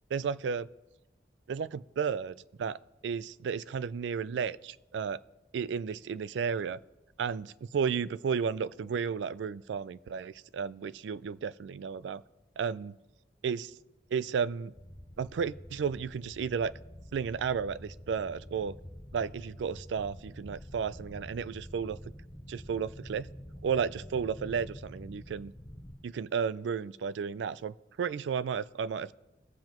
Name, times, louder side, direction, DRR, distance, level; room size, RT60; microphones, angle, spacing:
voice 1, 0.1-0.7 1.5-5.2 5.5-6.8 7.2-12.2 12.6-13.0 13.4-13.7 14.1-14.7 15.2-16.7 17.1-18.8 19.1-22.0 22.5-23.3 23.6-25.5 26.0-29.1, right 6 dB, 85° right, 18 dB, 0.3 m, -33 dB
sound 1, 14.7-26.0, equal, 25° left, 1.9 m, -47 dB
21.0 x 7.5 x 3.0 m, 0.98 s
head